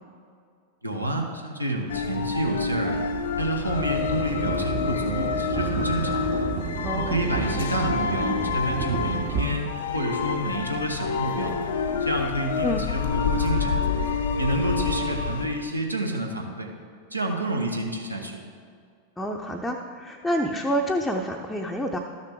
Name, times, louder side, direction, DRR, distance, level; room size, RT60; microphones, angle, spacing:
voice 1, 0.8-3.0 3.4-6.3 6.9-11.6 12.0-13.8 14.4-16.7 17.1-18.4, right 1 dB, 85° right, 2 dB, 1.0 m, -29 dB
sound 1, 1.9-15.5, left 5 dB, 65° left, 0.6 m, -28 dB
sound 2, 3.7-9.4, right 6 dB, 40° right, 0.9 m, -31 dB
voice 2, 6.8-7.2 12.6-12.9 19.2-22.0, equal, 5° left, 0 dB, 0.6 m, -28 dB
13.0 x 6.5 x 3.6 m, 2.2 s
figure-of-eight pair, 90°, 0 cm